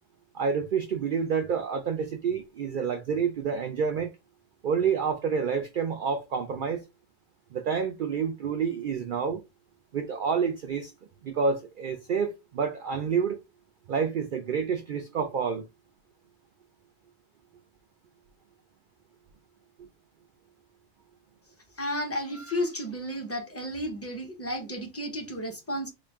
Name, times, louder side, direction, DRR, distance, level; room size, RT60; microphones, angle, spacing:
voice 1, 0.3-4.1 4.6-6.8 7.5-9.4 9.9-10.9 11.2-13.4 13.9-15.6, right 6 dB, 75° right, 0.4 m, -28 dB
voice 2, 21.8-25.9, equal, 15° left, 0.5 m, -32 dB
4.0 x 2.2 x 3.4 m
omnidirectional pair, 1.4 m